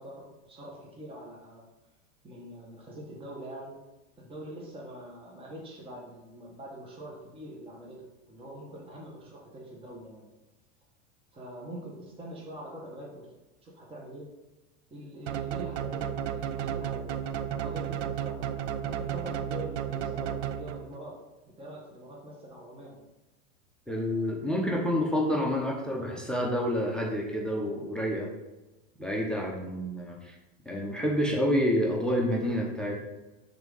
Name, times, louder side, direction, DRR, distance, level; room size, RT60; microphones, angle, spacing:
voice 1, 0.0-1.7 2.2-3.8 4.2-10.3 11.3-13.3 13.6-14.3 14.9-17.2 17.6-21.2 21.6-23.0, right 1 dB, 15° right, -3 dB, 1.2 m, -44 dB
sound 1, 15.3-21.0, right 9 dB, 70° right, 0.6 m, -33 dB
voice 2, 23.9-28.3 29.0-30.3 30.7-33.1, equal, ahead, -1 dB, 0.8 m, -28 dB
5.7 x 3.7 x 5.4 m, 1.1 s
supercardioid pair, 125°, 37 cm